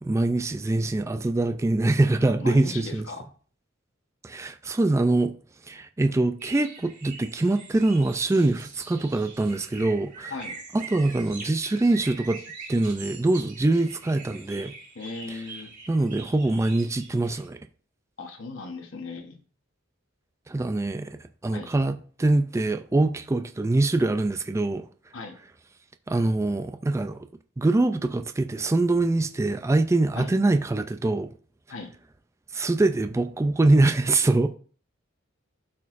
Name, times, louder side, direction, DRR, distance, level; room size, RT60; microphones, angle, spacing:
voice 1, 0.0-3.1 4.2-5.4 5.6-10.3 10.7-12.4 12.7-14.7 15.3-15.4 15.9-17.6 20.5-24.9 26.1-27.3 27.6-31.3 32.5-34.5, right 2 dB, 15° right, 0.3 m, -24 dB
voice 2, 2.2-3.3 10.3-10.6 14.9-15.7 18.2-19.4 21.5-21.7 25.1-25.4 30.1-30.3 31.7-31.9, left 3 dB, 70° left, 1.0 m, -37 dB
sound 1, 6.4-17.5, right 4 dB, 40° right, 1.9 m, -43 dB
12.0 x 4.4 x 2.5 m
head